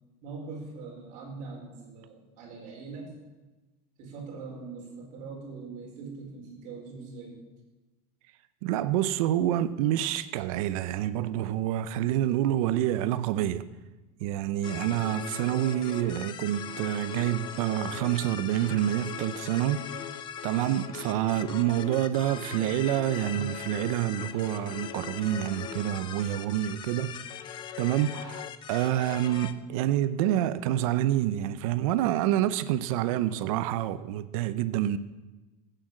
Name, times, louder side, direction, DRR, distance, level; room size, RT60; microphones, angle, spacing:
voice 1, 0.2-3.1 4.0-7.4, right 4 dB, 40° right, 4.5 m, -42 dB
voice 2, 8.6-13.6 14.2-20.1 20.4-27.2 27.8-35.0, right 12 dB, 60° right, 0.7 m, -27 dB
sound 1, 14.6-29.5, left 9 dB, 25° left, 0.7 m, -40 dB
17.0 x 9.1 x 7.5 m
supercardioid pair, 170°, 20 cm